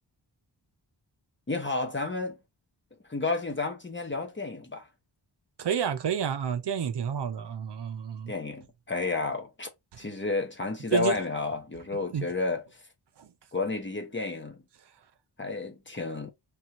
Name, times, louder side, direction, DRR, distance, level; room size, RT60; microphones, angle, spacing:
voice 1, 1.5-2.4 3.1-4.9 8.3-9.7 10.0-12.6 13.5-14.6 15.4-16.3, left 3 dB, 25° left, 0.9 m, -31 dB
voice 2, 5.6-8.3 9.9-10.0 10.9-11.2 12.1-12.3 13.2-13.3, right 8 dB, 65° right, 0.7 m, -30 dB
3.4 x 2.7 x 4.4 m
wide cardioid pair, 130°, 44 cm